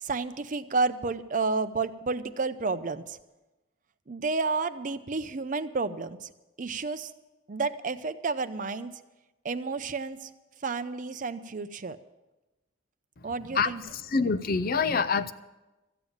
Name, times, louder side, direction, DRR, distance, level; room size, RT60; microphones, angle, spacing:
voice 1, 0.0-3.2 4.1-6.3 6.6-7.1 7.5-8.9 9.4-10.3 10.6-12.0 13.2-13.8, right 4 dB, 40° right, 12 dB, 0.6 m, -31 dB
voice 2, 13.5-15.3, left 4 dB, 50° left, 12 dB, 0.5 m, -26 dB
14.0 x 8.9 x 7.2 m, 1.1 s
head